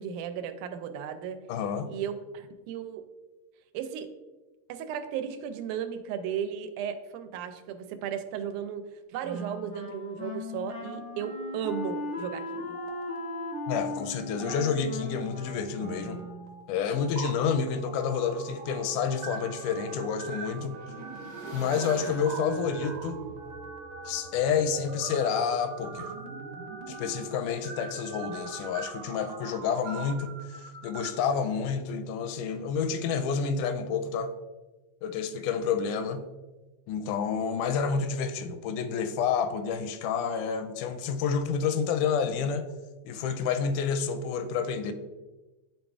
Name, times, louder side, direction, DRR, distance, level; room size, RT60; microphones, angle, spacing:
voice 1, 0.0-1.4 1.9-3.0 3.7-4.1 4.7-8.8 9.1-12.8, right 8 dB, 90° right, 9 dB, 2.1 m, -35 dB
voice 2, 1.5-1.9 13.7-16.2 16.7-20.8 21.5-23.3 24.0-26.1 26.9-34.3 35.0-36.3 36.9-42.7 43.1-44.9, left 6 dB, 85° left, 9 dB, 2.0 m, -29 dB
Wind instrument woodwind instrument, 9.2-16.6, left 2 dB, 10° left, 0.4 m, -38 dB
sound 1, 12.6-14.0 14.3-14.5 15.1-31.1, right 5 dB, 75° right, 1.8 m, -42 dB
Motorcycle / Engine, 18.4-25.1, right 3 dB, 60° right, 0.9 m, -45 dB
10.5 x 3.9 x 2.3 m, 1.2 s
omnidirectional pair, 3.5 m